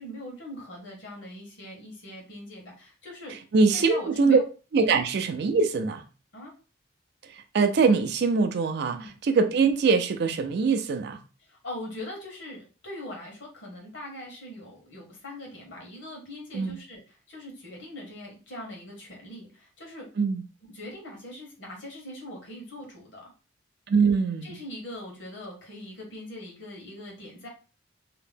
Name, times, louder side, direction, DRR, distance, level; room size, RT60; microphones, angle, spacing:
voice 1, 0.0-3.3 3.7-4.4 6.3-6.5 8.9-9.1 11.4-20.1 20.6-23.3 24.4-27.5, left 1 dB, 75° left, 1.2 m, -41 dB
voice 2, 3.5-4.4 4.7-6.0 7.5-11.2 16.5-16.8 20.2-20.4 23.9-24.5, right 4 dB, 60° right, 0.4 m, -23 dB
2.8 x 2.1 x 3.3 m
head